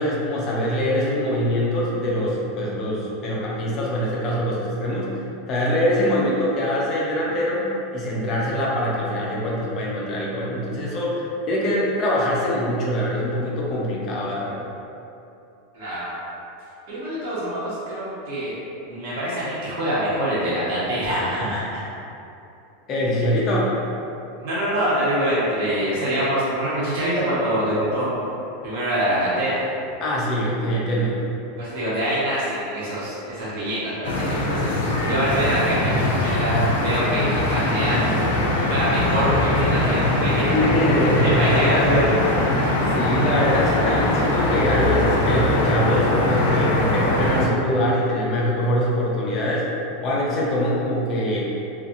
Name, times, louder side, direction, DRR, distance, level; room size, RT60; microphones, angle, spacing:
voice 1, 0.0-5.1 5.5-14.7 22.9-23.7 30.0-31.2 40.5-41.5 43.0-49.7 50.0-51.5, equal, 30° left, -5 dB, 0.5 m, -23 dB
voice 2, 15.7-16.3 16.9-18.6 18.9-21.8 24.4-28.1 28.6-29.6 31.6-38.1 38.7-40.6 41.2-42.2, right 1 dB, 60° right, -9 dB, 1.1 m, -24 dB
sound 1, 34.0-47.5, left 1 dB, 85° left, 0.4 m, -21 dB
2.8 x 2.4 x 2.5 m, 2.7 s
supercardioid pair, 160°, 0 cm